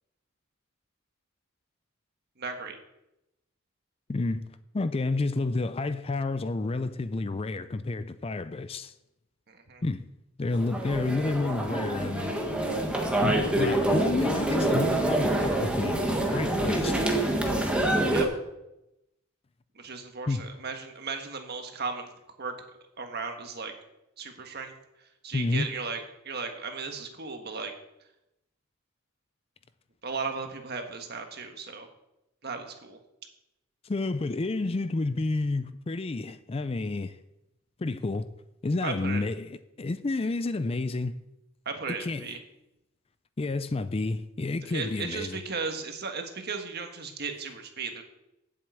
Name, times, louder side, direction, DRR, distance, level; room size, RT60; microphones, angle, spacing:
voice 1, 2.4-2.8 9.5-9.8 18.1-18.3 19.7-22.1 22.4-22.5 23.0-23.7 24.2-24.7 25.2-26.0 26.2-27.7 30.0-31.9 32.4-33.0 38.8-39.2 41.6-42.4 44.7-48.0, right 4 dB, 50° right, 1.5 m, -35 dB
voice 2, 4.1-4.5 4.7-8.9 9.8-10.1 10.4-12.4 13.2-16.0 16.3-17.0 20.3-20.5 25.3-25.7 33.8-37.2 37.8-38.3 38.6-41.2 41.9-42.4 43.4-45.4, left 3 dB, 30° left, 0.4 m, -30 dB
sound 1, 10.5-18.2, right 1 dB, 5° right, 1.4 m, -26 dB
7.7 x 7.7 x 8.4 m
head